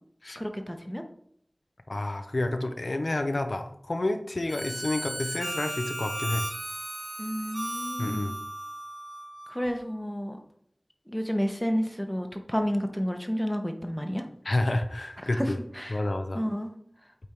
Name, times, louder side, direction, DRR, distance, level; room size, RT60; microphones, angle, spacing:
voice 1, 0.3-1.0 7.2-8.3 9.5-10.4 11.1-14.2 15.2-15.5 15.8-16.0 16.3-16.7, equal, 5° left, 5 dB, 0.9 m, -31 dB
voice 2, 1.9-6.4 8.0-8.4 14.4-15.6 15.9-16.4, left 2 dB, 70° left, 7 dB, 0.6 m, -29 dB
Harmonica, 4.5-9.7, right 1 dB, 50° right, 2.0 m, -36 dB
8.4 x 3.5 x 4.4 m, 0.68 s
wide cardioid pair, 45°, 0 cm